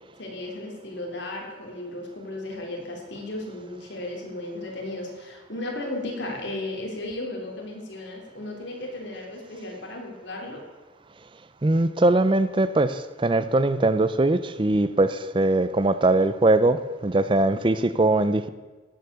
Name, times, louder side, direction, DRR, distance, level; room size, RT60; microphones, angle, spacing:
voice 1, 0.2-10.6, left 2 dB, 70° left, 0 dB, 3.5 m, -35 dB
voice 2, 11.6-18.5, right 2 dB, 25° right, 13 dB, 0.5 m, -21 dB
17.0 x 8.1 x 6.8 m, 1.3 s
head